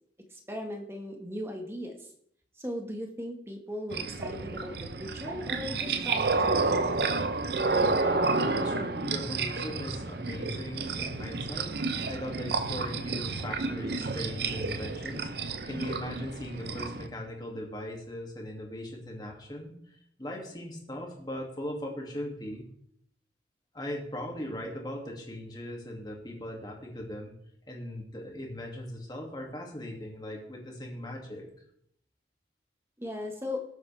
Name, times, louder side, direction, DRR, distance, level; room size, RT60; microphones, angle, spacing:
voice 1, 0.3-2.1 2.6-6.8 33.0-33.6, left 1 dB, 15° right, 3 dB, 1.6 m, -38 dB
sound 1, 3.9-17.1, right 3 dB, 60° right, 0.8 m, -30 dB
voice 2, 8.0-15.3 15.6-19.7 20.2-22.6 23.7-27.3 27.7-31.5, left 1 dB, 25° left, 0 dB, 2.4 m, -39 dB
19.0 x 8.0 x 3.5 m, 0.69 s
head